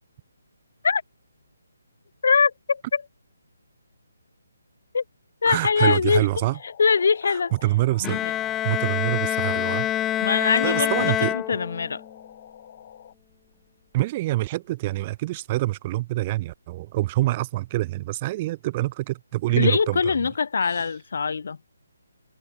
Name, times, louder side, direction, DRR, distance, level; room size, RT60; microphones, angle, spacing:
voice 1, 2.2-3.0 4.9-5.0 5.4-6.2 6.8-7.5 8.0-8.3 10.2-12.0 19.6-21.6, left 5 dB, 55° left, 0.9 m, -22 dB
voice 2, 5.5-6.6 7.3-8.2 8.6-9.9 10.6-11.4 13.9-20.3 20.7-20.8, right 17 dB, 30° right, 2.4 m, -26 dB
sound 1, 6.1-13.1, left 9 dB, 40° left, 5.5 m, -47 dB
Bowed string instrument, 8.0-12.0, left 12 dB, 15° left, 0.9 m, -26 dB
figure-of-eight pair, 145°, 0 cm